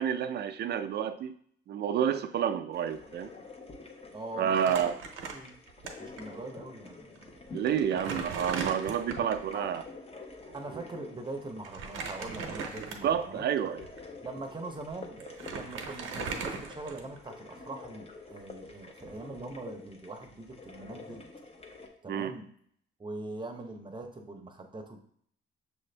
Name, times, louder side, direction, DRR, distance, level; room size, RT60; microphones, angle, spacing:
voice 1, 0.0-1.3 1.7-3.3 4.4-5.0 7.5-9.8 10.5-10.8 13.0-13.9 22.1-22.3, right 8 dB, 55° right, 10 dB, 0.4 m, -29 dB
sound 1, 2.7-21.9, left 3 dB, 30° left, 0.8 m, -48 dB
voice 2, 4.1-5.5 6.0-7.7 9.5-9.8 10.5-13.7 14.2-21.2 22.0-22.5 23.0-25.0, right 2 dB, 25° right, 4 dB, 0.7 m, -42 dB
Crumpling crinkling, 4.5-5.9 6.2-6.3 7.1-7.2 7.7-9.5 11.6-13.2 13.8-14.0 14.9-15.0 15.2-17.3, right 5 dB, 85° right, 0.7 m, -38 dB
6.2 x 2.5 x 3.3 m, 0.64 s
cardioid pair, 90°, 20 cm